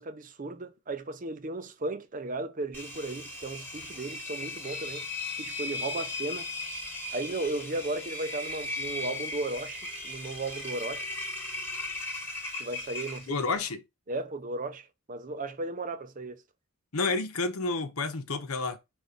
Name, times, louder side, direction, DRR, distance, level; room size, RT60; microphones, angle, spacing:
voice 1, 0.0-5.1 5.4-6.5 7.1-11.1 12.6-13.4 14.1-16.4, right 2 dB, 35° right, 0.6 m, -35 dB
Engine, 2.7-13.6, left 2 dB, 10° left, 1.3 m, -37 dB
voice 2, 13.3-13.8 16.9-18.8, left 3 dB, 80° left, 1.0 m, -30 dB
5.1 x 3.6 x 5.3 m
head